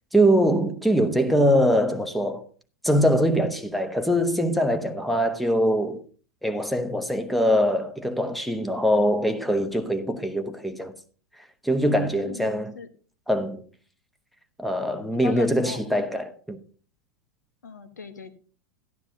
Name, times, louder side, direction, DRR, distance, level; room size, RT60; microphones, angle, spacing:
voice 1, 0.1-2.4 2.8-6.0 6.4-10.9 11.6-12.8 13.3-13.6 14.6-16.6, equal, ahead, 1.0 m, -23 dB
voice 2, 12.2-12.9 15.2-15.8 17.6-18.3, left 6 dB, 75° left, 1.2 m, -38 dB
12.5 x 11.5 x 2.7 m
figure-of-eight pair, 90°, 9 cm